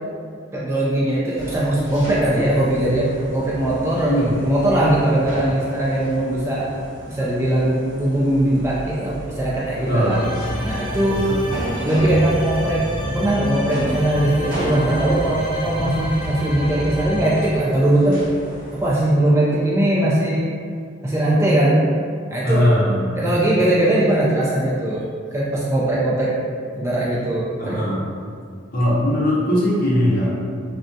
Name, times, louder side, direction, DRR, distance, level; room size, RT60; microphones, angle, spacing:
voice 1, 0.5-6.7 7.1-10.2 10.6-11.2 11.8-12.8 13.1-18.2 18.7-20.5 21.0-21.9 22.3-22.6 23.2-26.3 26.8-27.9, right 1 dB, 15° right, -7 dB, 0.3 m, -20 dB
sound 1, 1.4-19.0, equal, 45° right, 0.9 m, -35 dB
voice 2, 4.0-4.3 9.9-10.3 11.2-11.5 22.4-23.2 27.6-28.1 28.7-30.4, equal, 50° left, -7 dB, 0.7 m, -20 dB
sound 2, 10.1-17.5, equal, 85° right, 0.8 m, -29 dB
2.3 x 2.1 x 2.6 m, 2.1 s
head